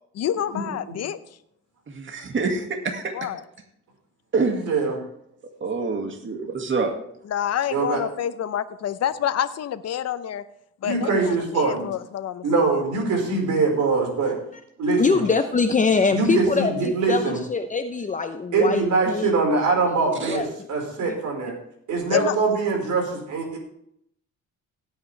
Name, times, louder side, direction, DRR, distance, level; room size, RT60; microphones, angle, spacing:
voice 1, 0.1-1.2 3.1-3.4 7.3-10.4 10.8-12.7 22.1-22.3, left 10 dB, 55° left, 11 dB, 0.8 m, -27 dB
voice 2, 1.9-3.1 4.3-4.7 5.6-6.9 20.2-20.4, right 4 dB, 40° right, 4 dB, 2.0 m, -26 dB
voice 3, 4.7-5.0 7.7-8.0 10.8-11.9 12.4-14.3 14.8-15.2 16.1-17.4 18.5-21.5 21.9-23.6, right 4 dB, 75° right, 1 dB, 4.8 m, -23 dB
voice 4, 15.0-19.3 19.9-20.7 21.1-21.2 21.5-21.6, left 4 dB, 25° left, 7 dB, 0.8 m, -24 dB
17.0 x 8.7 x 3.4 m, 0.73 s
cardioid pair, 90°, 30 cm